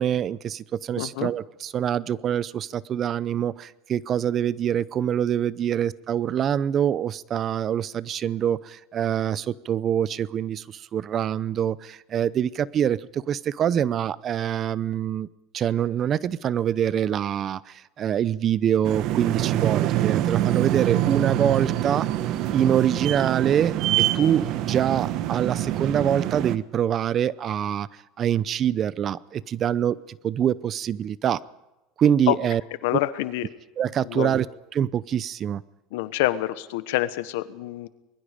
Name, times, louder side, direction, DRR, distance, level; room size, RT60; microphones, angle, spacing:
voice 1, 0.0-15.3 15.5-22.1 22.5-27.9 28.2-31.4 32.0-32.6 33.8-34.5 34.7-35.6, right 9 dB, 40° right, 20 dB, 0.7 m, -25 dB
voice 2, 1.0-1.3 32.3-32.4 32.8-33.5 34.0-34.3 35.9-37.9, left 16 dB, 80° left, 14 dB, 1.2 m, -26 dB
sound 1, 18.8-26.6, right 13 dB, 60° right, 1.1 m, -25 dB
25.0 x 21.5 x 5.1 m, 0.98 s
supercardioid pair, 115°, 0 cm